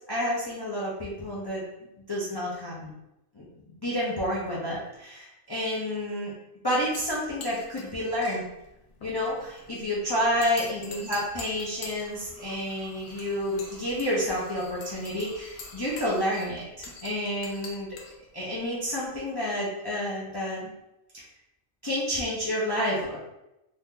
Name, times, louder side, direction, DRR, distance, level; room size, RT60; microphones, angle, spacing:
voice 1, 0.1-1.6 2.1-2.9 3.3-3.5 3.8-6.3 6.6-8.4 9.0-17.9 18.3-20.7 21.1-21.3 21.8-23.2, equal, 40° left, -7 dB, 0.3 m, -29 dB
sound 1, 6.8-19.1, left 3 dB, 60° left, 0.7 m, -46 dB
2.8 x 2.4 x 3.6 m, 0.91 s
omnidirectional pair, 1.4 m